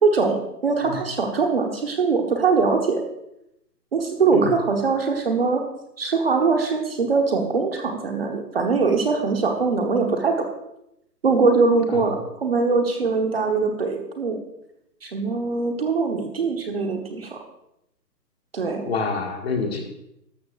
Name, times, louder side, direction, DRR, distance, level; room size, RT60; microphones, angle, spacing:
voice 1, 0.0-3.0 3.9-5.6 6.0-10.4 11.2-14.4 15.0-17.4 18.5-18.8, right 4 dB, 35° right, 3 dB, 1.2 m, -22 dB
voice 2, 18.9-19.8, left 4 dB, 40° left, 2 dB, 1.8 m, -26 dB
13.0 x 12.5 x 2.5 m, 0.81 s
hypercardioid pair, 175°, 49 cm